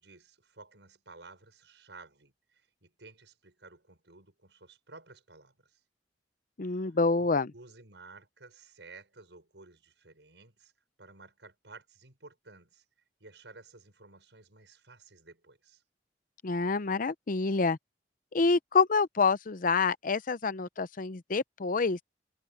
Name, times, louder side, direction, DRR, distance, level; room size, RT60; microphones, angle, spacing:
voice 1, 0.0-5.8 6.6-10.7 11.0-12.8 13.2-15.8, right 3 dB, 90° right, 6.3 m, -54 dB
voice 2, 6.6-7.5 16.4-17.8 18.3-22.0, left 4 dB, 50° left, 0.7 m, -27 dB
head